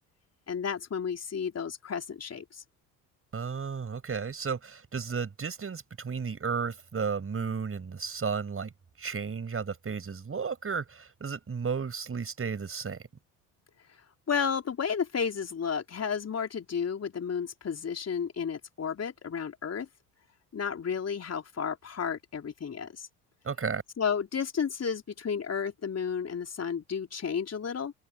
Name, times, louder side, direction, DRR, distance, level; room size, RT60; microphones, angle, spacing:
voice 1, 0.5-2.6 14.3-19.9 20.5-23.1 24.0-27.9, left 6 dB, 35° left, 4.6 m, -32 dB
voice 2, 3.3-8.7 9.0-13.0 23.4-23.8, right 5 dB, 30° right, 6.5 m, -33 dB
open air
figure-of-eight pair, 55°, 44 cm